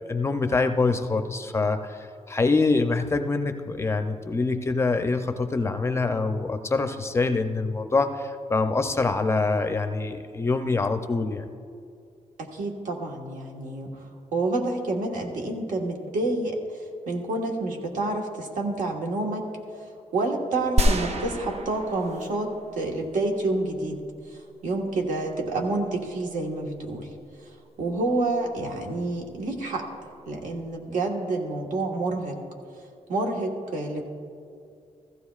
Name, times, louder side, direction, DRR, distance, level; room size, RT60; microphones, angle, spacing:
voice 1, 0.1-11.4, left 3 dB, 20° left, 7 dB, 0.4 m, -25 dB
voice 2, 12.4-14.0 14.3-16.6 17.1-19.5 20.1-24.0 24.3-27.1 27.8-29.9 30.3-32.4 33.1-34.0, right 2 dB, 85° right, 1 dB, 1.4 m, -28 dB
sound 1, 20.8-23.0, right 1 dB, 55° right, 0.7 m, -26 dB
15.0 x 14.5 x 2.4 m, 2.4 s
wide cardioid pair, 170°, 13 cm